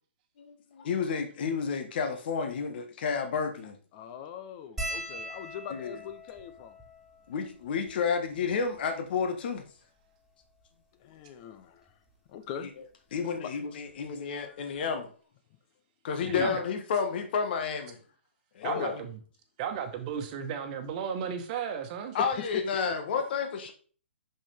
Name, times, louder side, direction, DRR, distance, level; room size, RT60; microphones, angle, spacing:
voice 1, 0.4-3.8 5.7-6.0 7.3-9.6 13.1-15.1 16.0-18.0 18.5-19.0 22.1-23.7, left 6 dB, 50° left, 1.5 m, -31 dB
voice 2, 3.9-6.8 11.0-11.9 12.3-12.7 13.3-13.5 14.5-14.6 16.2-16.5 18.6-18.9 22.2-22.9, left 8 dB, 35° left, 0.8 m, -40 dB
sound 1, 4.8-9.4 10.1-10.2 10.4-10.6 11.9-12.1 13.5-13.6 13.9-14.1, right 1 dB, 5° right, 3.1 m, -42 dB
voice 3, 16.3-16.6 18.6-19.1 19.6-22.2, right 7 dB, 35° right, 1.4 m, -34 dB
6.2 x 5.8 x 3.5 m
hypercardioid pair, 140°, 7 cm